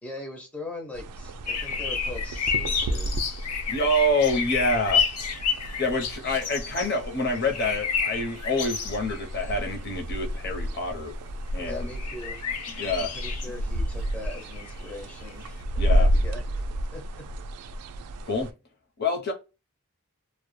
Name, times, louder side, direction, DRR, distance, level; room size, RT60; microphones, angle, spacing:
voice 1, 0.0-3.4 11.6-12.4 13.0-16.7 16.9-17.2, left 2 dB, 5° left, 0.4 m, -41 dB
sound 1, 0.9-18.5, equal, 85° right, 0.3 m, -31 dB
sound 2, 1.5-6.9 7.3-9.2 9.5-9.6 11.9-13.5 14.0-14.7 15.3-15.5, left 6 dB, 90° left, 0.6 m, -30 dB
voice 2, 3.7-5.0 5.8-11.1 11.5-11.9 12.8-13.1 15.8-16.1 18.3-18.5 19.0-19.3, left 1 dB, 45° left, 0.6 m, -26 dB
2.1 x 2.0 x 2.9 m
head